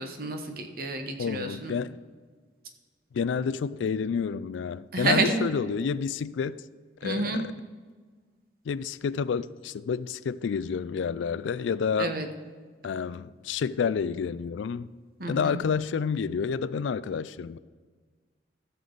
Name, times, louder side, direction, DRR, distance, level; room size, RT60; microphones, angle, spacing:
voice 1, 0.0-1.7 4.9-5.4 7.0-7.4 12.0-12.3 15.2-15.6, right 3 dB, 50° right, 1.0 m, -29 dB
voice 2, 1.2-2.0 3.1-6.6 7.0-7.5 8.7-12.2 12.8-14.9 15.3-17.6, left 6 dB, 80° left, 0.3 m, -29 dB
14.5 x 6.9 x 3.9 m
head